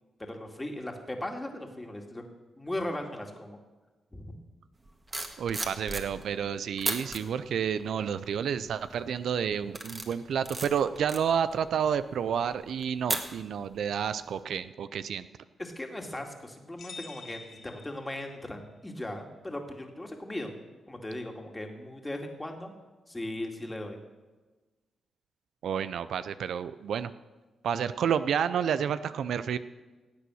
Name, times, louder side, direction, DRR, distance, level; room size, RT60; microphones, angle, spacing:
voice 1, 0.2-2.3 2.6-3.6 4.1-4.4 15.6-20.5 20.9-22.7 23.1-24.0, left 1 dB, 15° left, 3 dB, 2.4 m, -38 dB
sound 1, 4.9-6.4 6.8-7.2 7.8-8.2 8.7-9.0 9.5-13.8 14.1-14.3, right 2 dB, 25° right, 1.9 m, -36 dB
voice 2, 5.4-15.3 25.6-27.1 27.6-29.6, right 8 dB, 75° right, 13 dB, 0.5 m, -30 dB
sound 2, 16.8-18.6, left 4 dB, 65° left, 2.4 m, -47 dB
17.0 x 8.4 x 6.4 m, 1.2 s
cardioid pair, 70°, 0 cm